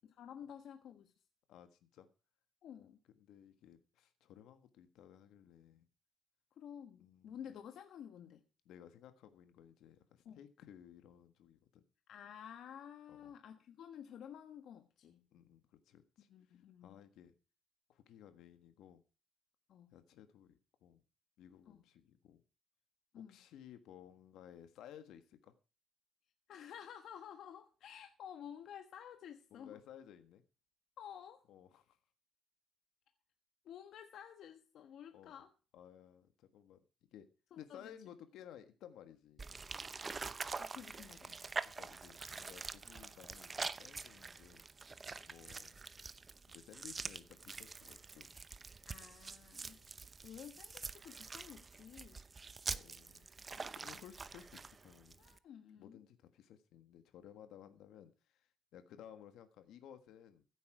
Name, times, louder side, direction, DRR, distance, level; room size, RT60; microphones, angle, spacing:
voice 1, 0.0-1.1 2.6-3.0 6.6-8.4 10.2-10.4 12.1-15.2 16.3-17.0 19.7-19.9 21.7-21.8 23.1-23.4 26.5-29.8 31.0-31.4 33.6-35.5 37.5-38.0 40.6-41.4 48.9-49.8 50.2-52.2 53.5-53.7 55.2-56.0, left 9 dB, 70° left, 1.3 m, -52 dB
voice 2, 1.5-2.1 3.1-5.9 7.0-7.4 8.6-11.8 13.1-13.3 15.3-17.3 17.9-19.0 19.9-21.0 21.4-22.4 23.3-25.5 29.5-30.4 31.5-32.0 35.1-35.4 35.7-37.3 37.6-39.5 41.6-44.6 45.2-45.8 46.5-48.3 49.8-49.9 52.7-53.3 53.6-55.2 55.8-60.4, left 10 dB, 90° left, 1.5 m, -57 dB
sound 1, 39.4-55.4, right 4 dB, 25° right, 0.7 m, -46 dB
15.0 x 8.3 x 4.7 m
cardioid pair, 135°, 0 cm